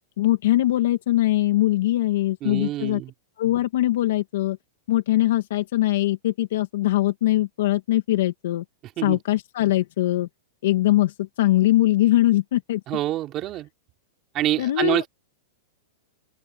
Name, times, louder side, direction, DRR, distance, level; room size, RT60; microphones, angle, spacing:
voice 1, 0.2-3.0 3.4-4.6 4.9-8.6 9.0-10.3 10.6-12.8 14.6-15.0, left 15 dB, 65° left, 2.1 m, -21 dB
voice 2, 2.4-3.1 9.0-9.2 12.9-13.7 14.3-15.1, right 14 dB, 25° right, 3.3 m, -26 dB
open air
supercardioid pair, 165°, 0 cm